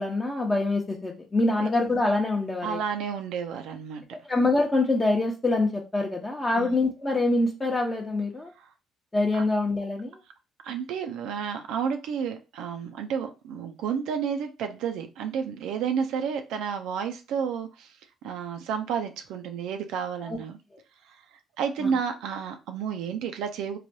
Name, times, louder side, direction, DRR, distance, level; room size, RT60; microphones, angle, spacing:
voice 1, 0.0-2.8 4.3-8.5 9.1-10.2 20.2-20.4 21.8-21.9, left 2 dB, 25° left, 0.7 m, -25 dB
voice 2, 2.6-4.2 6.5-6.8 8.6-8.7 10.6-18.0 18.2-20.6 21.0-21.2 21.6-23.8, right 7 dB, 80° right, 0.4 m, -31 dB
3.2 x 2.2 x 2.6 m
supercardioid pair, 60°, 0 cm